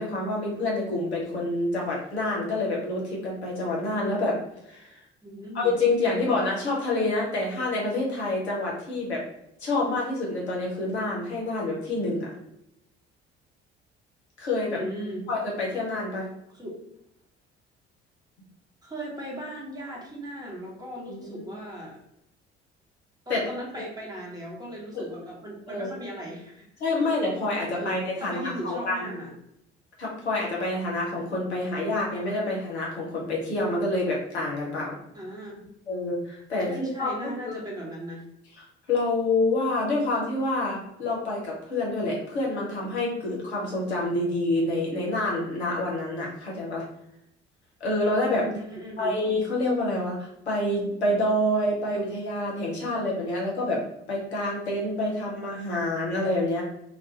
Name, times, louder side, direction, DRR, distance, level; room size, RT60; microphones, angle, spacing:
voice 1, 0.0-5.0 5.5-9.2 9.6-12.3 14.4-14.8 15.3-16.3 21.1-21.5 23.3-23.5 24.9-25.0 25.7-25.9 26.8-29.1 30.0-34.9 35.9-37.5 38.5-46.8 47.8-48.5 49.0-53.8 54.1-56.6, left 2 dB, 85° left, -3 dB, 0.6 m, -27 dB
voice 2, 5.2-5.7 6.1-6.3 14.7-15.2 16.5-16.7 18.8-22.0 23.3-27.1 27.7-29.3 35.1-35.7 36.7-38.2 48.4-49.2, equal, 10° right, -3 dB, 1.0 m, -37 dB
2.2 x 2.1 x 2.7 m, 0.80 s
figure-of-eight pair, 50°, 32 cm